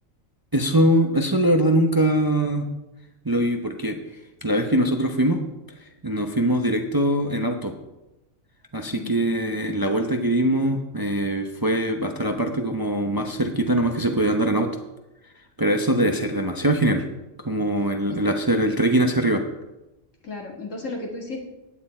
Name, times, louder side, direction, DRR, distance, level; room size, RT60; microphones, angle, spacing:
voice 1, 0.5-2.7 3.2-4.0 4.4-5.4 6.0-7.7 8.7-14.7 15.6-17.0 17.4-19.4, right 1 dB, 20° right, 4 dB, 0.7 m, -22 dB
voice 2, 8.9-9.6 18.1-18.2 20.2-21.4, left 2 dB, 70° left, 0 dB, 2.5 m, -35 dB
15.5 x 9.5 x 4.4 m, 1.0 s
omnidirectional pair, 1.4 m